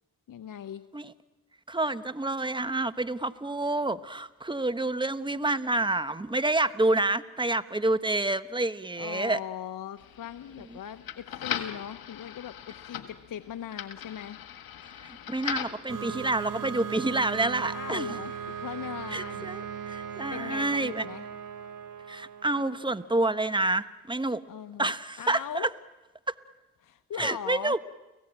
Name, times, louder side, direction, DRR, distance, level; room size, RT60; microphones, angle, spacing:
voice 1, 0.3-0.8 9.0-14.4 17.7-19.5 20.0-21.2 24.5-25.7 26.8-27.8, left 9 dB, 65° left, 9 dB, 1.0 m, -40 dB
voice 2, 1.7-9.4 15.0-18.2 19.1-21.0 22.1-24.4 24.8-25.7 26.3-26.4 27.2-27.8, right 2 dB, 15° right, 13 dB, 1.2 m, -28 dB
sound 1, 10.0-15.9, left 10 dB, 85° left, 1.6 m, -39 dB
sound 2, 15.9-23.2, right 7 dB, 65° right, 3.0 m, -38 dB
30.0 x 17.5 x 8.8 m, 1.1 s
cardioid pair, 55°, 35 cm